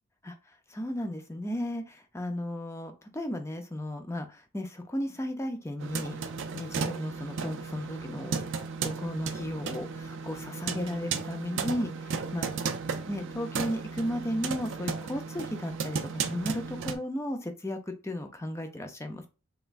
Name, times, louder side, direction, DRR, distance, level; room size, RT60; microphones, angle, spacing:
voice 1, 0.7-6.2 6.5-8.4 8.8-12.6 13.1-19.3, left 1 dB, 15° left, 5 dB, 0.5 m, -35 dB
sound 1, 5.8-17.0, right 5 dB, 60° right, 0.4 m, -35 dB
3.4 x 3.0 x 2.4 m, 0.31 s
head